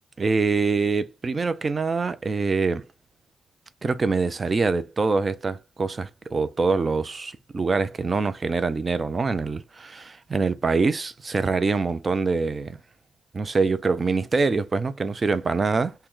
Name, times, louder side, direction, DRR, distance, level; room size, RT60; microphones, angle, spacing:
voice 1, 0.2-2.9 3.8-12.8 13.3-15.9, right 4 dB, 30° right, 0.4 m, -24 dB
3.0 x 2.2 x 3.7 m
cardioid pair, 90°, 0 cm